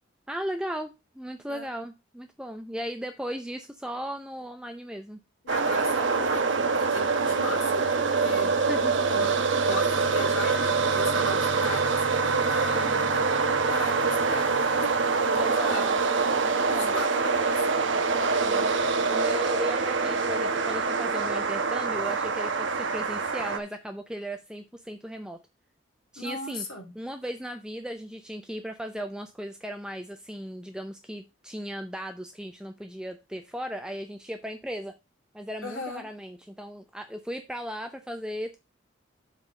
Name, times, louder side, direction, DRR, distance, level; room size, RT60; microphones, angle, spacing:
voice 1, 0.3-5.2 8.7-9.1 12.6-13.1 15.3-16.0 16.4-17.0 18.4-18.7 19.1-25.4 26.1-26.7 27.0-34.9 35.3-38.6, equal, 5° right, 5 dB, 0.5 m, -37 dB
voice 2, 5.4-8.5 9.1-14.9 15.3-15.9 16.7-17.8 18.5-18.6 18.9-19.2 26.2-26.9 35.6-36.0, left 2 dB, 90° left, 4 dB, 2.6 m, -37 dB
sound 1, 5.5-23.6, right 4 dB, 70° right, 1.0 m, -25 dB
7.3 x 4.0 x 6.2 m, 0.26 s
head